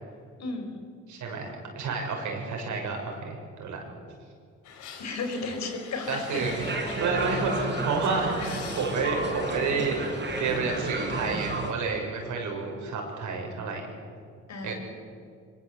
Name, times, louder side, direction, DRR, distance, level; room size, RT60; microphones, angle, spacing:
voice 1, 0.4-0.8 5.0-6.5 14.5-14.7, left 3 dB, 65° left, 5 dB, 4.8 m, -33 dB
voice 2, 1.1-3.8 6.1-10.0 10.3-13.9 14.6-14.7, right 4 dB, 75° right, 1 dB, 6.5 m, -30 dB
sound 1, 4.6-10.6, left 6 dB, 85° left, 3.7 m, -43 dB
sound 2, 6.4-11.7, right 2 dB, 35° right, 6.0 m, -31 dB
24.5 x 22.0 x 8.2 m, 2.3 s
cardioid pair, 90°, 30 cm